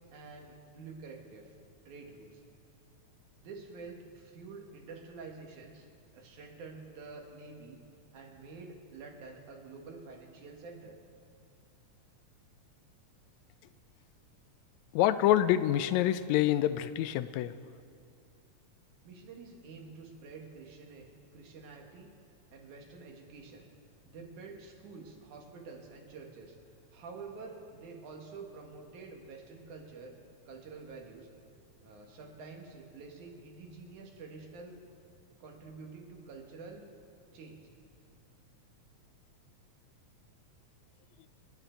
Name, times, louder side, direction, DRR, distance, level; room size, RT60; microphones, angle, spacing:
voice 1, 0.1-1.5 1.8-2.4 3.4-5.9 6.1-7.8 8.1-11.0 19.0-22.1 22.5-23.7 24.1-26.6 26.9-30.2 30.5-31.3 31.8-34.8 35.4-36.9 37.3-37.7, right 4 dB, 80° right, 1 dB, 3.1 m, -48 dB
voice 2, 14.9-17.5, left 12 dB, 80° left, 13 dB, 1.7 m, -26 dB
28.0 x 9.5 x 4.5 m, 2.4 s
omnidirectional pair, 3.4 m